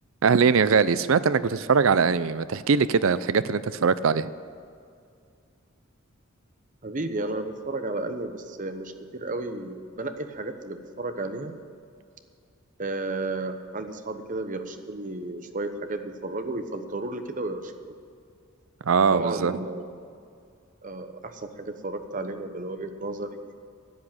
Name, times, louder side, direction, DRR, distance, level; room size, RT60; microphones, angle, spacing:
voice 1, 0.2-4.3 18.8-19.6, right 5 dB, 70° right, 15 dB, 0.5 m, -21 dB
voice 2, 6.8-11.5 12.8-17.8 19.1-20.2 20.8-23.5, right 2 dB, 40° right, 8 dB, 0.9 m, -33 dB
13.0 x 8.4 x 8.8 m, 2.3 s
head